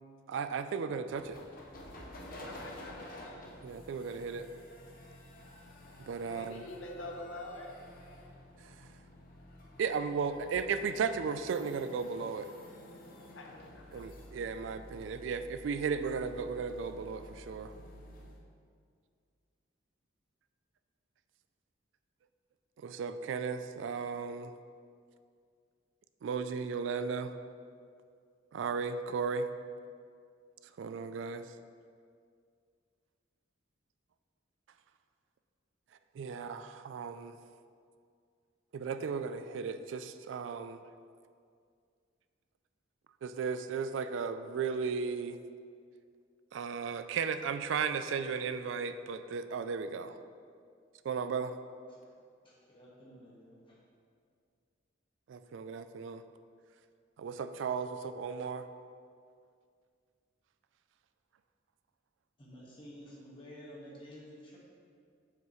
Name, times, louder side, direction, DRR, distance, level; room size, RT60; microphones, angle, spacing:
voice 1, 0.3-1.4 3.6-4.5 6.0-6.6 8.6-8.7 9.8-12.5 13.9-17.7 22.8-24.5 26.2-27.3 28.5-29.5 30.8-31.4 36.2-37.4 38.7-40.8 43.2-45.4 46.5-50.2 51.0-51.5 55.3-56.2 57.2-58.7, right 5 dB, 70° right, 10 dB, 0.3 m, -35 dB
sound 1, 1.1-18.4, left 1 dB, 50° left, 0.8 m, -51 dB
voice 2, 2.5-3.2 6.3-7.7 13.2-13.5 13.7-14.1, left 1 dB, 80° left, 2 dB, 0.8 m, -46 dB
voice 3, 52.4-53.8 62.4-64.6, equal, 25° left, -5 dB, 1.5 m, -51 dB
7.6 x 5.5 x 3.1 m, 2.2 s
head